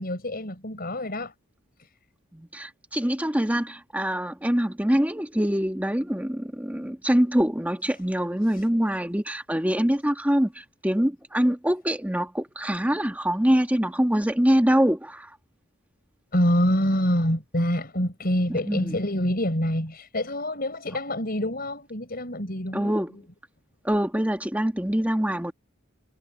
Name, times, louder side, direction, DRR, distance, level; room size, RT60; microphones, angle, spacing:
voice 1, 0.0-1.3 1.8-1.9 16.3-23.0, equal, 45° left, 5.0 m, -26 dB
voice 2, 2.3-15.3 18.5-19.0 22.7-23.1 23.8-25.5, equal, 5° right, 1.4 m, -24 dB
head